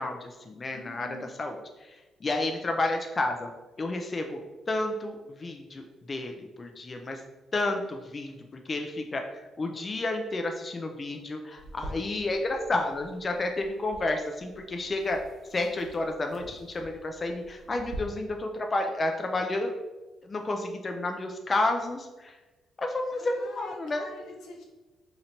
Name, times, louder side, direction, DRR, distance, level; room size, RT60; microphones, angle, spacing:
voice 1, 0.0-3.5 3.8-4.4 4.7-7.2 7.5-8.3 8.7-15.2 15.5-19.7 20.2-22.4 22.8-24.1, left 2 dB, 30° left, 3 dB, 0.3 m, -31 dB
voice 2, 0.7-1.3 23.1-24.7, left 3 dB, 85° left, 1 dB, 0.7 m, -45 dB
sound 1, 11.6-18.0, right 1 dB, 60° right, 0.9 m, -47 dB
2.9 x 2.6 x 4.3 m, 1.2 s
cardioid pair, 90°, 0 cm